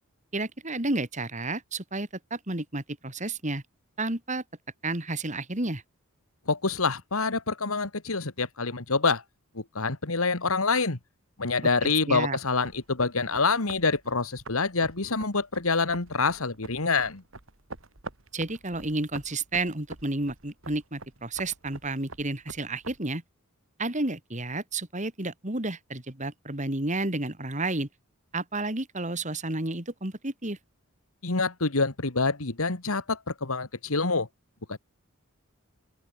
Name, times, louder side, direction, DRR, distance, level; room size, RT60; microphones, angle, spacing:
voice 1, 0.3-3.6 4.0-4.4 4.8-5.8 11.8-12.4 18.3-23.2 23.8-27.9 28.3-30.6, right 2 dB, 35° right, 3.3 m, -31 dB
voice 2, 6.5-9.2 9.5-11.0 11.4-17.2 31.2-34.3 34.7-34.8, left 4 dB, 80° left, 2.0 m, -26 dB
sound 1, 12.5-23.0, right 3 dB, 65° right, 3.0 m, -46 dB
open air
head